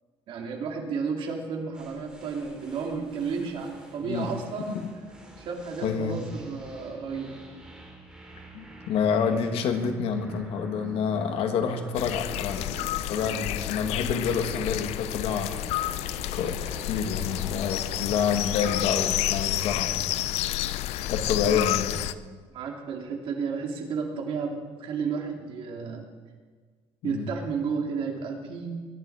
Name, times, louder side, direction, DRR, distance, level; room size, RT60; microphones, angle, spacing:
voice 1, 0.3-4.8 5.4-7.3 21.4-21.6 22.5-26.1 27.0-28.7, right 5 dB, 55° right, 1 dB, 3.1 m, -32 dB
sound 1, 1.7-19.4, right 2 dB, 10° right, 3.5 m, -46 dB
voice 2, 5.8-6.3 8.5-15.5 16.3-20.1 21.1-21.9 27.0-27.3, left 6 dB, 65° left, 6 dB, 1.9 m, -28 dB
sound 2, 11.9-22.1, left 14 dB, 85° left, 0.6 m, -30 dB
22.5 x 11.0 x 4.9 m, 1.5 s
cardioid pair, 155°, 11 cm